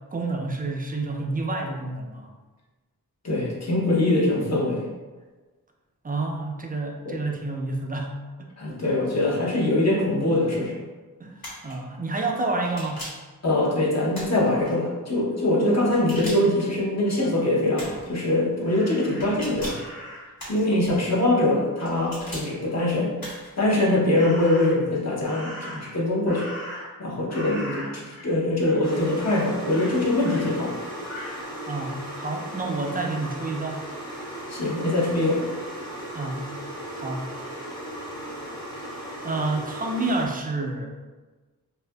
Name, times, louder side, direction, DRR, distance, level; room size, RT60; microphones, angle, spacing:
voice 1, 0.1-2.3 6.0-8.5 11.2-13.0 31.7-33.8 36.1-36.5 36.9-37.3 39.2-40.9, right 2 dB, 25° right, 1 dB, 0.4 m, -29 dB
voice 2, 3.2-4.8 7.1-7.2 8.6-10.8 13.4-19.8 20.5-23.2 23.6-26.5 27.0-30.8 34.5-35.5, left 1 dB, 45° left, -4 dB, 0.8 m, -23 dB
sound 1, 11.4-11.7 12.6-13.3 14.1-14.7 15.9-16.6 17.7-18.1 19.2-19.9 20.4-20.9 21.8-22.5 23.2-23.6, equal, 70° left, 1.3 m, -38 dB
Crow, 18.6-20.4 24.1-24.9 25.2-27.0 27.3-28.3 28.6-28.9 29.2-30.5 31.1-31.4, equal, 90° left, 1.4 m, -39 dB
sound 2, 28.8-40.3, right 1 dB, 10° left, 0.7 m, -36 dB
2.6 x 2.4 x 2.2 m, 1.3 s
wide cardioid pair, 55°, 37 cm